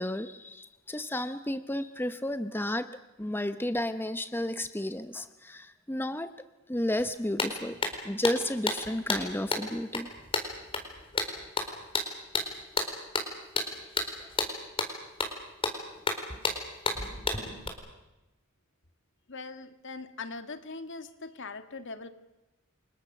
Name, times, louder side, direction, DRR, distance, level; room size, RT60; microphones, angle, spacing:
voice 1, 0.0-2.9 3.2-6.3 6.7-7.8 8.0-10.1, left 1 dB, 10° left, 10 dB, 0.8 m, -32 dB
sound 1, 7.0-7.1 7.4-17.7, left 3 dB, 25° left, 4.4 m, -32 dB
voice 2, 19.3-22.1, left 3 dB, 60° left, 9 dB, 1.9 m, -41 dB
29.5 x 25.5 x 6.7 m, 0.99 s
head